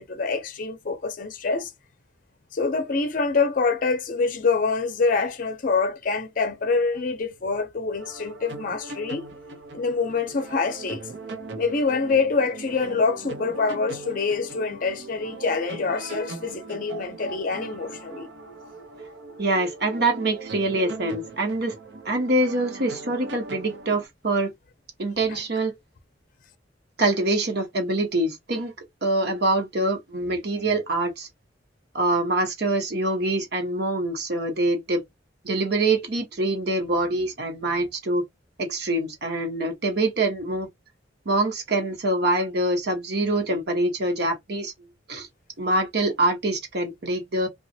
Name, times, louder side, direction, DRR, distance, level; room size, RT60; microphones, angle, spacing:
voice 1, 0.0-1.7 2.5-9.3 9.7-11.1 11.5-18.3 25.3-25.4, left 4 dB, 50° left, 0.5 m, -25 dB
sound 1, 7.9-24.1, right 3 dB, 80° right, 0.7 m, -39 dB
voice 2, 19.4-21.7 22.0-24.5 25.0-25.7 27.0-28.7 29.0-31.3 31.9-35.0 35.4-38.2 38.6-40.7 41.2-44.7 45.1-45.3 45.6-47.5, right 2 dB, 65° right, 1.1 m, -25 dB
2.9 x 2.4 x 2.7 m
head